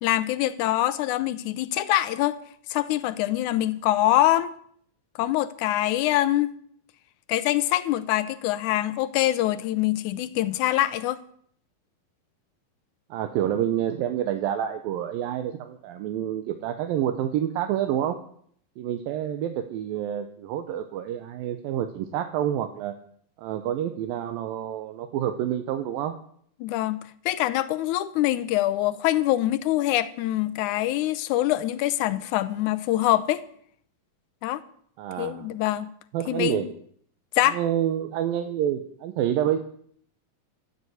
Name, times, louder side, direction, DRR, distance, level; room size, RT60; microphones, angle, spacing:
voice 1, 0.0-2.4 2.7-4.5 5.2-6.5 7.3-11.2 26.6-33.4 34.4-34.6 35.2-35.9 36.3-36.7 37.3-37.6, left 14 dB, 80° left, 14 dB, 1.8 m, -24 dB
voice 2, 13.1-18.2 18.8-22.9 23.4-26.1 35.0-35.5 36.1-36.7 37.5-39.6, right 10 dB, 80° right, 7 dB, 2.6 m, -28 dB
14.0 x 8.4 x 7.9 m, 0.63 s
omnidirectional pair, 4.1 m